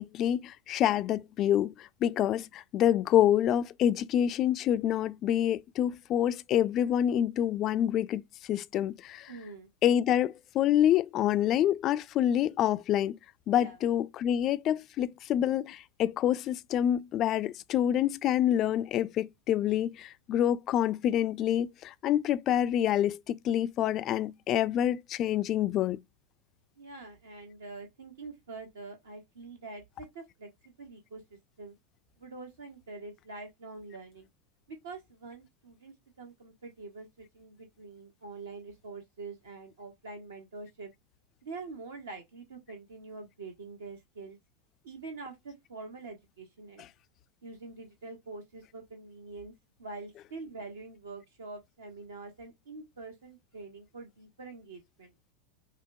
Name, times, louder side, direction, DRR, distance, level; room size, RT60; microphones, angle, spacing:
voice 1, 0.0-9.3 9.8-13.2 13.5-26.0 46.8-46.9, left 11 dB, 35° left, 0.3 m, -27 dB
voice 2, 9.3-9.7 13.5-13.8 26.8-31.7 32.2-34.3 34.7-40.9 41.4-44.4 44.8-46.9 47.4-49.5 49.8-55.1, right 3 dB, 70° right, 1.0 m, -45 dB
5.5 x 2.1 x 2.6 m
figure-of-eight pair, 85°, 0 cm